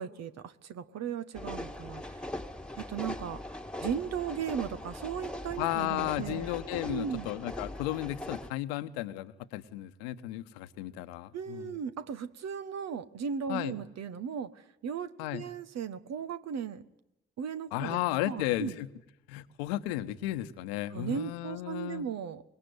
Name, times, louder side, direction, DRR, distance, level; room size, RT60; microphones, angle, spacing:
voice 1, 0.0-2.2 2.8-3.4 3.8-6.5 6.9-7.3 11.3-16.8 17.4-18.0 18.2-18.7 20.9-22.4, right 7 dB, 65° right, 12 dB, 1.4 m, -36 dB
sound 1, 1.3-8.5, left 1 dB, 5° left, 1.7 m, -41 dB
voice 2, 5.6-11.7 13.5-13.7 15.2-15.4 17.7-18.9 19.3-22.1, left 15 dB, 85° left, 12 dB, 1.1 m, -34 dB
25.0 x 21.5 x 9.6 m, 0.88 s
hypercardioid pair, 40°, 29 cm